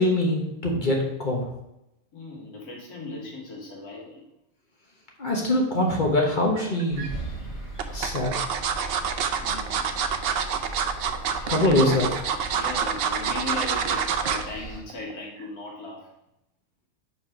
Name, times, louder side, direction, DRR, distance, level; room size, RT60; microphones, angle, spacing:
voice 1, 0.0-1.5 5.2-7.0 7.9-8.3 11.5-12.1, left 1 dB, 35° left, 0 dB, 1.1 m, -23 dB
voice 2, 2.1-4.2 9.3-9.9 11.3-12.0 12.5-16.1, left 3 dB, 80° left, -3 dB, 2.2 m, -37 dB
sound 1, 6.6-7.1 7.8-14.5 14.9-15.1 15.4-15.5, right 7 dB, 70° right, 0.6 m, -27 dB
sound 2, 6.9-14.8, right 3 dB, 10° left, 1.9 m, -39 dB
4.8 x 4.2 x 5.8 m, 0.86 s
omnidirectional pair, 1.5 m